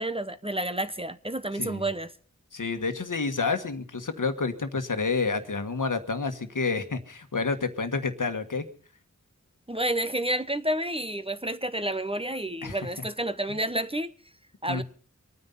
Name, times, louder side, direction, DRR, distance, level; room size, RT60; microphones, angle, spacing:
voice 1, 0.0-2.1 9.7-14.1 14.6-14.8, right 1 dB, 20° right, 0.9 m, -30 dB
voice 2, 1.5-1.8 2.5-8.6 12.6-13.0 13.5-13.6 14.7-14.8, left 4 dB, 80° left, 1.5 m, -29 dB
24.0 x 9.7 x 5.5 m
wide cardioid pair, 45°, 31 cm